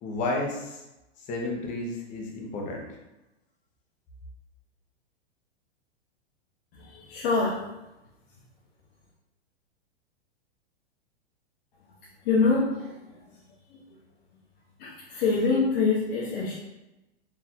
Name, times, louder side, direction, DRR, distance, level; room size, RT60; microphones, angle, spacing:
voice 1, 0.0-0.8 1.3-2.9, left 2 dB, 25° left, 0 dB, 0.8 m, -31 dB
voice 2, 6.7-7.6 12.2-13.4 13.7-14.0 14.8-16.5, left 4 dB, 60° left, -8 dB, 1.2 m, -26 dB
4.6 x 3.3 x 2.8 m, 0.98 s
hypercardioid pair, 140°, 33 cm